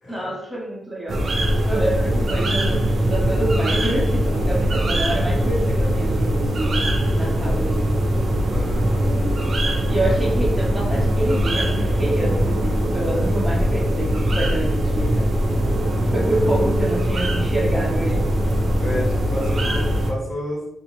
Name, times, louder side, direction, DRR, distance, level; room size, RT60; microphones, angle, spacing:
voice 1, 0.1-8.0 9.9-15.3 16.0-18.3, right 1 dB, 5° right, -5 dB, 0.7 m, -27 dB
sound 1, 1.1-20.1, equal, 40° right, 0.4 m, -21 dB
voice 2, 8.5-9.2 18.5-20.7, left 1 dB, 45° left, -11 dB, 1.4 m, -31 dB
2.7 x 2.1 x 2.9 m, 0.86 s
wide cardioid pair, 175°, 0 cm